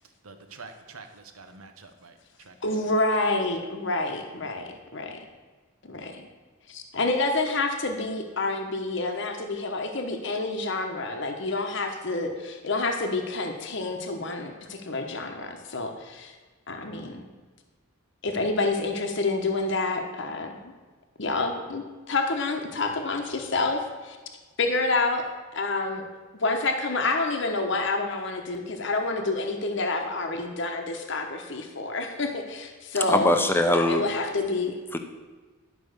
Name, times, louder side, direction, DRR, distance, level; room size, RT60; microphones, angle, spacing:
voice 1, 0.2-2.5, right 4 dB, 90° right, 6 dB, 1.1 m, -46 dB
voice 2, 2.6-5.2 5.8-6.3 6.7-16.3 16.7-17.3 18.2-20.7 21.2-24.2 24.6-25.3 25.5-26.0 26.3-33.3 33.7-34.7, left 3 dB, 55° left, 4 dB, 1.0 m, -28 dB
voice 3, 33.1-34.1 34.9-35.0, left 1 dB, 10° left, 6 dB, 0.7 m, -22 dB
11.5 x 5.3 x 6.6 m, 1.4 s
head